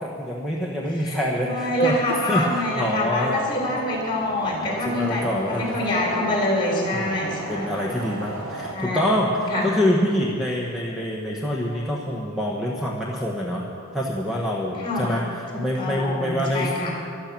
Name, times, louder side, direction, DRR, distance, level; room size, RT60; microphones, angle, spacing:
voice 1, 0.0-3.4 4.6-5.9 6.9-13.7 13.9-16.7, equal, ahead, -3 dB, 1.1 m, -26 dB
voice 2, 1.0-7.7 8.7-9.0 9.5-9.7 14.8-15.1 15.5-17.0, left 1 dB, 20° left, -1 dB, 3.6 m, -26 dB
sound 1, 2.5-8.7, right 2 dB, 65° right, 1.1 m, -36 dB
13.0 x 12.0 x 7.4 m, 2.4 s
head